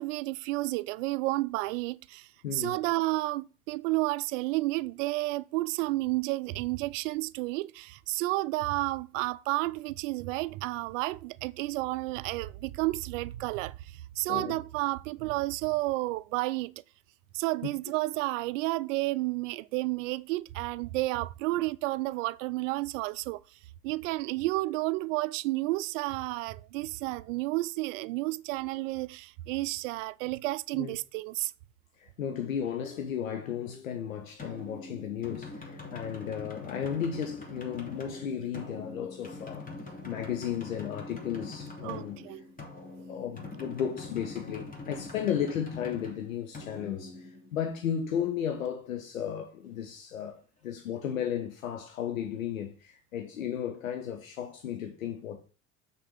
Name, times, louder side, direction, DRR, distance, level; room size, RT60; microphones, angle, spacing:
voice 1, 0.0-16.7 17.3-23.4 23.8-31.5 41.8-42.5, right 20 dB, 70° right, 0.5 m, -31 dB
voice 2, 2.4-2.8 14.3-14.6 30.8-31.0 32.0-39.7 40.0-42.2 43.1-55.4, left 8 dB, 85° left, 0.8 m, -34 dB
sound 1, 34.4-47.9, left 3 dB, 20° left, 2.8 m, -44 dB
6.4 x 4.3 x 6.5 m
hypercardioid pair, 65°, 39 cm